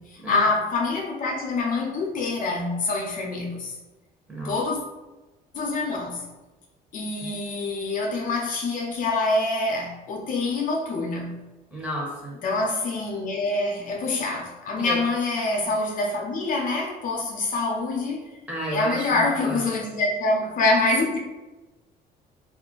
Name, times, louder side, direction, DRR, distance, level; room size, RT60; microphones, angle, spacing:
voice 1, 0.1-3.8 4.4-4.8 5.5-6.2 6.9-11.4 12.4-18.2 18.7-21.2, left 3 dB, 55° left, 0.6 m, -25 dB
voice 2, 11.7-12.4 14.8-15.0 18.5-19.6, right 1 dB, 10° right, 0.9 m, -32 dB
2.4 x 2.1 x 3.8 m
cardioid pair, 110°, 17 cm